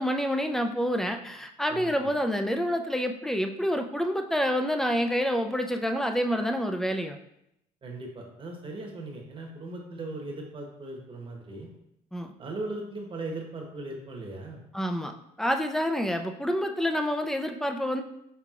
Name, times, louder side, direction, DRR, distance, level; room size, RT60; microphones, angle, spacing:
voice 1, 0.0-7.2 12.1-12.3 14.7-18.0, equal, ahead, 5 dB, 0.4 m, -28 dB
voice 2, 1.7-2.1 7.8-11.7 12.4-14.6, right 2 dB, 30° right, 1 dB, 1.0 m, -38 dB
5.7 x 3.4 x 2.4 m, 0.81 s
cardioid pair, 110°, 17 cm